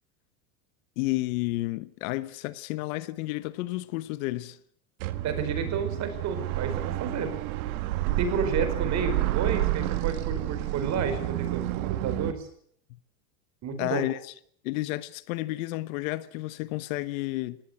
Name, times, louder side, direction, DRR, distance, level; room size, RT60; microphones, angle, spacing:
voice 1, 1.0-4.6 13.8-14.3 14.6-17.6, left 19 dB, 65° left, 1.2 m, -31 dB
sound 1, 5.0-12.3, right 16 dB, 75° right, 1.8 m, -29 dB
voice 2, 5.2-7.3 8.2-12.5 13.6-14.0, right 5 dB, 40° right, 5.2 m, -31 dB
19.5 x 17.5 x 9.0 m
supercardioid pair, 130°, 44 cm